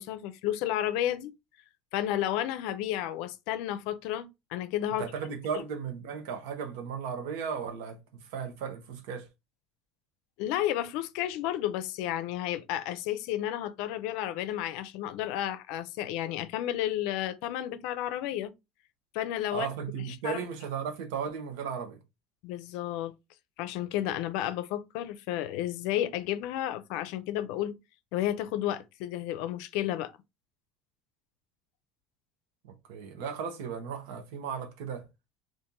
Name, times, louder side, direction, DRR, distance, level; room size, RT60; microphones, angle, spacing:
voice 1, 0.0-1.3 1.9-5.0 10.4-18.5 19.1-19.7 20.1-20.4 22.4-23.1 23.6-27.8 28.1-30.1, left 12 dB, 70° left, 0.5 m, -32 dB
voice 2, 5.0-9.3 19.5-22.0 32.6-35.1, right 7 dB, 80° right, 0.9 m, -36 dB
2.9 x 2.5 x 3.7 m
cardioid pair, 140°, 0 cm